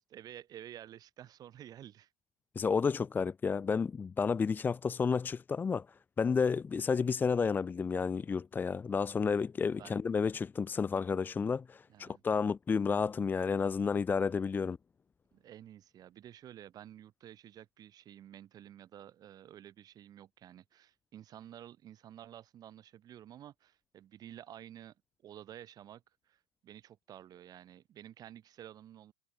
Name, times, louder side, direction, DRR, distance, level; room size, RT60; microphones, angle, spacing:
voice 1, 0.0-2.1 9.8-10.0 11.9-12.2 15.3-24.9 25.2-29.1, right 11 dB, 25° right, 7.0 m, -51 dB
voice 2, 2.5-5.8 6.2-14.8, left 5 dB, 10° left, 1.3 m, -31 dB
hypercardioid pair, 145°, 15 cm